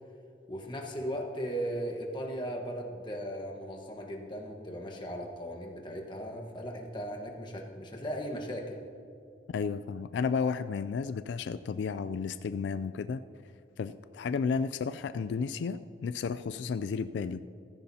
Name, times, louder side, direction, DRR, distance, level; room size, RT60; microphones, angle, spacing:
voice 1, 0.5-8.8, equal, 25° left, 1 dB, 1.3 m, -37 dB
voice 2, 9.5-13.2 13.8-17.4, left 5 dB, 85° left, 13 dB, 0.3 m, -32 dB
15.0 x 14.5 x 2.8 m, 2.5 s
head